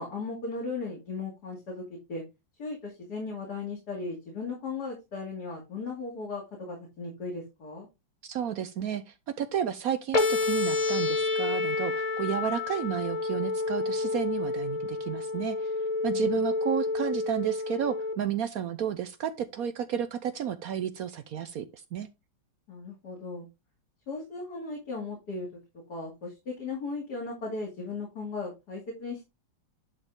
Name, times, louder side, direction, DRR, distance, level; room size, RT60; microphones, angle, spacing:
voice 1, 0.0-1.8 2.1-2.2 2.6-7.9 16.1-16.4 22.7-23.5 24.1-25.5 25.9-29.3, left 3 dB, 50° left, 2.8 m, -37 dB
voice 2, 8.2-15.7 16.0-22.1, right 9 dB, 70° right, 0.8 m, -32 dB
sound 1, 10.1-18.1, left 3 dB, 35° left, 0.6 m, -29 dB
11.0 x 4.2 x 3.6 m
omnidirectional pair, 2.2 m